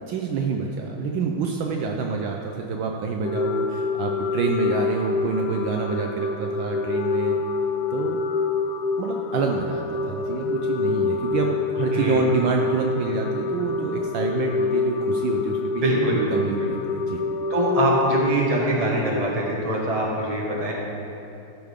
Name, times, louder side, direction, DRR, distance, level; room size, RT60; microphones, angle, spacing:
voice 1, 0.1-7.4 7.9-8.2 9.0-17.2, right 5 dB, 75° right, 2 dB, 1.3 m, -27 dB
sound 1, 3.2-18.3, left 4 dB, 70° left, 0.9 m, -26 dB
voice 2, 11.9-12.4 15.8-16.7 17.5-20.7, right 1 dB, 20° right, -3 dB, 1.2 m, -23 dB
14.0 x 6.5 x 3.5 m, 3.0 s
omnidirectional pair, 2.4 m